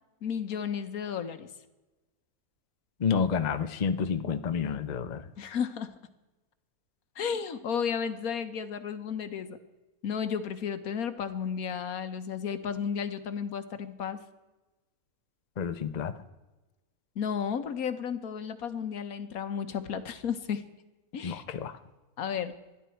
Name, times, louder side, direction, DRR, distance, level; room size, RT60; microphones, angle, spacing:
voice 1, 0.2-1.5 5.4-5.9 7.2-9.6 10.0-14.2 17.1-20.6 21.1-21.4 22.2-22.5, left 7 dB, 75° left, 10 dB, 1.4 m, -33 dB
voice 2, 3.0-5.3 15.6-16.1 21.2-21.8, left 6 dB, 40° left, 9 dB, 0.6 m, -29 dB
21.0 x 13.0 x 4.5 m, 1.1 s
omnidirectional pair, 1.6 m